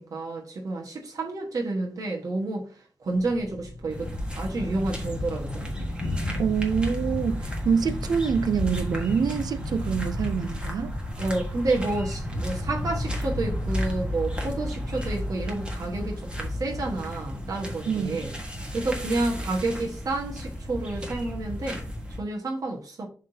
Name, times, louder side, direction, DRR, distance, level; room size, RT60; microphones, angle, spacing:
voice 1, 0.0-2.7 3.0-5.7 11.2-18.3 18.7-21.8 22.2-23.1, right 2 dB, 60° right, 1.4 m, -30 dB
Thunder, 3.1-15.8, left 1 dB, 30° left, 0.8 m, -36 dB
sound 1, 3.9-22.2, equal, 15° right, 1.4 m, -34 dB
voice 2, 6.4-10.9 17.9-18.2, right 6 dB, 75° right, 0.6 m, -26 dB
11.0 x 3.7 x 2.8 m
wide cardioid pair, 140°, 7 cm